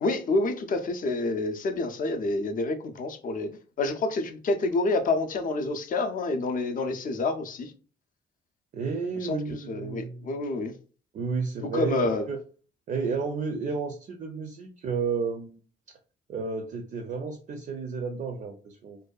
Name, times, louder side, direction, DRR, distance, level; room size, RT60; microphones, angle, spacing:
voice 1, 0.0-3.5 3.8-7.7 9.2-9.4 9.7-10.7 11.7-12.3, left 2 dB, 45° left, 0.4 m, -28 dB
voice 2, 8.7-10.3 11.1-12.4 12.9-15.6 16.3-19.0, right 5 dB, 45° right, 0.4 m, -32 dB
2.6 x 2.2 x 2.3 m
cardioid pair, 90°, 20 cm